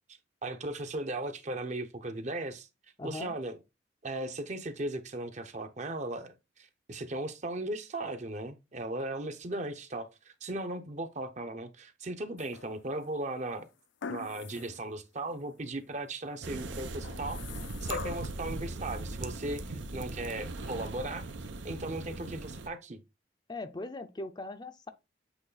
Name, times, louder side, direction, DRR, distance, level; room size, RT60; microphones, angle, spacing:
voice 1, 0.4-2.7 3.0-3.5 4.0-13.7 14.1-17.4 17.8-21.2 21.6-23.0, right 2 dB, 40° right, 0.7 m, -37 dB
voice 2, 3.0-3.3 23.5-24.9, left 2 dB, 25° left, 0.5 m, -40 dB
sound 1, 12.4-13.0 14.0-14.8 15.3-15.4 17.0-18.4 19.5-19.6, left 5 dB, 85° left, 0.5 m, -41 dB
sound 2, 16.4-22.7, right 2 dB, 90° right, 0.9 m, -39 dB
8.0 x 3.1 x 4.0 m
head